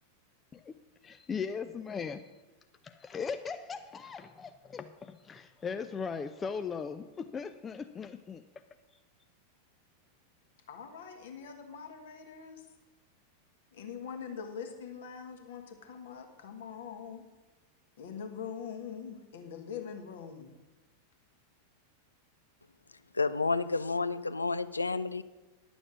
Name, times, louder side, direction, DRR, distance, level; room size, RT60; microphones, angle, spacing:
voice 1, 1.0-2.2 2.8-8.4, left 6 dB, 20° left, 9 dB, 0.5 m, -38 dB
voice 2, 10.7-12.6 13.7-17.2 18.0-20.5, left 7 dB, 60° left, 4 dB, 1.6 m, -43 dB
voice 3, 23.1-25.2, left 3 dB, 80° left, 15 dB, 0.4 m, -30 dB
11.0 x 7.1 x 6.2 m, 1.1 s
figure-of-eight pair, 90°, 0 cm